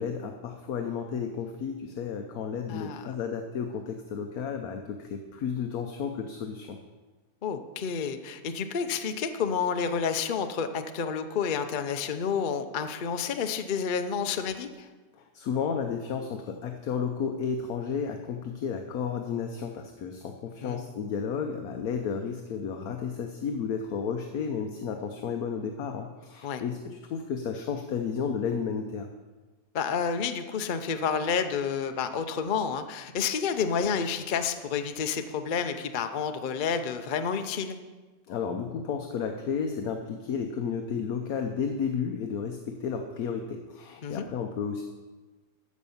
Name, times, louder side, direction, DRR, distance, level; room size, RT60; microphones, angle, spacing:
voice 1, 0.0-6.8 15.2-29.1 38.3-44.8, left 6 dB, 65° left, 5 dB, 1.2 m, -32 dB
voice 2, 2.7-3.1 7.4-14.9 20.6-20.8 26.4-26.6 29.7-37.8 44.0-44.3, left 6 dB, 50° left, 8 dB, 0.6 m, -30 dB
13.5 x 5.4 x 7.1 m, 1.3 s
omnidirectional pair, 1.8 m